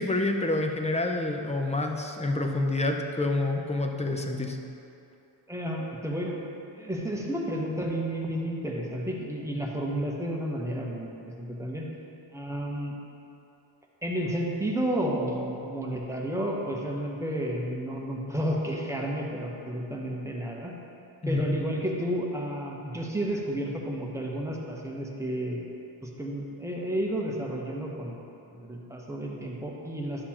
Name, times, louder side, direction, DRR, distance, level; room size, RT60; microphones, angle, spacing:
voice 1, 0.0-4.6 21.2-21.5, left 2 dB, 15° left, 3 dB, 0.5 m, -28 dB
voice 2, 5.5-6.4 6.8-11.9 12.3-13.0 14.0-20.7 21.3-25.7 26.0-28.2 28.5-30.3, right 1 dB, 5° right, -2 dB, 0.9 m, -31 dB
11.5 x 6.7 x 2.9 m, 2.7 s
cardioid pair, 130°, 46 cm